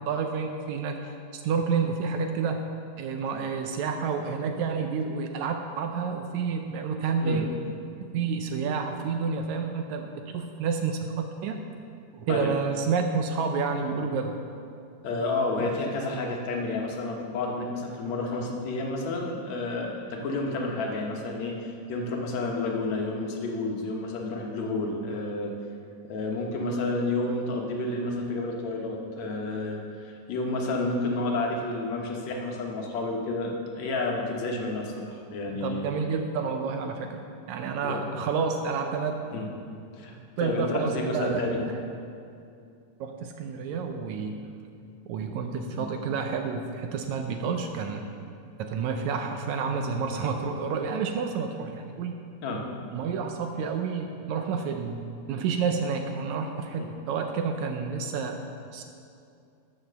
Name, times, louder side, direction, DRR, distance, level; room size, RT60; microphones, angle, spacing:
voice 1, 0.1-2.6 3.0-7.5 8.1-11.6 12.1-14.4 15.6-15.7 35.6-37.2 37.5-39.3 40.4-41.8 43.0-44.4 45.1-48.0 48.6-52.2 52.9-55.0 55.3-58.4 58.7-58.8, right 5 dB, 80° right, 5 dB, 1.7 m, -29 dB
voice 2, 15.0-25.5 26.1-35.8 37.8-38.0 39.3-39.5 39.9-41.6 45.7-45.9 52.4-52.6, left 2 dB, 65° left, 0 dB, 2.2 m, -30 dB
13.0 x 5.9 x 6.8 m, 2.5 s
omnidirectional pair, 3.9 m